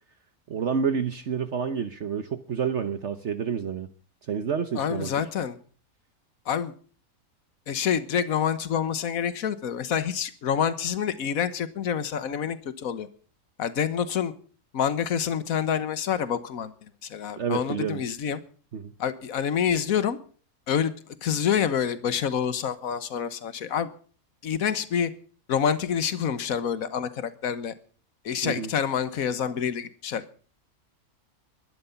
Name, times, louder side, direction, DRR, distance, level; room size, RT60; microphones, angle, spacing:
voice 1, 0.5-3.9 4.2-5.1 17.4-18.0 18.7-18.9 28.4-28.7, right 6 dB, 55° right, 10 dB, 1.2 m, -29 dB
voice 2, 4.7-5.6 6.5-6.7 7.7-13.1 13.6-14.3 14.7-16.7 17.0-18.4 19.0-20.2 20.7-20.9 21.2-23.9 24.4-25.1 25.5-27.7 28.2-30.3, left 8 dB, 70° left, 13 dB, 1.6 m, -27 dB
21.0 x 12.0 x 5.8 m, 0.43 s
omnidirectional pair, 1.5 m